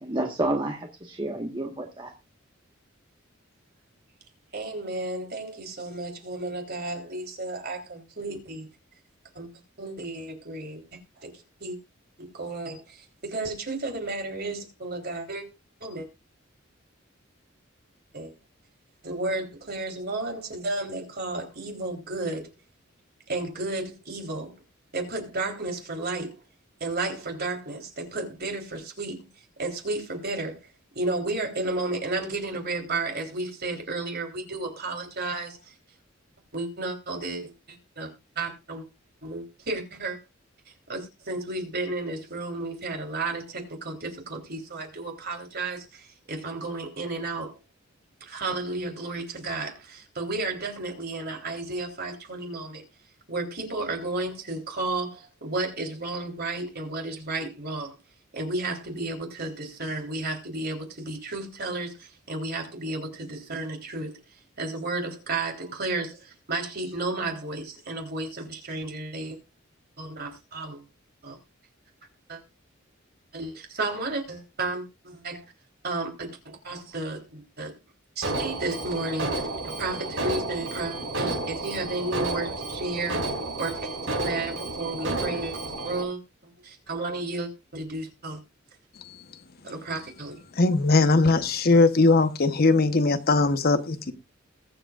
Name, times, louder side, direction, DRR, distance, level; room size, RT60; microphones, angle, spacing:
voice 1, 0.0-2.1, right 2 dB, 25° right, 1.4 m, -30 dB
voice 2, 4.5-8.7 9.4-9.5 9.8-10.9 11.2-11.3 11.6-11.8 12.2-13.0 13.2-15.5 15.8-16.1 18.1-18.3 19.0-22.5 23.3-24.5 24.9-26.4 26.8-29.2 29.6-30.7 31.0-35.6 36.5-38.1 38.4-38.8 39.2-40.2 40.9-47.6 48.2-52.8 53.3-57.9 58.3-64.2 64.6-69.4 70.0-70.8 71.2-71.4 72.3-72.4 73.3-75.4 75.8-77.7 78.2-83.3 83.6-83.9 84.2-86.2 86.6-88.4 89.6-90.3, right 2 dB, 55° right, 3.5 m, -32 dB
Alarm, 78.2-86.0, right 2 dB, 75° right, 5.1 m, -31 dB
voice 3, 90.6-94.1, left 3 dB, 50° left, 1.0 m, -20 dB
21.5 x 7.9 x 2.4 m
head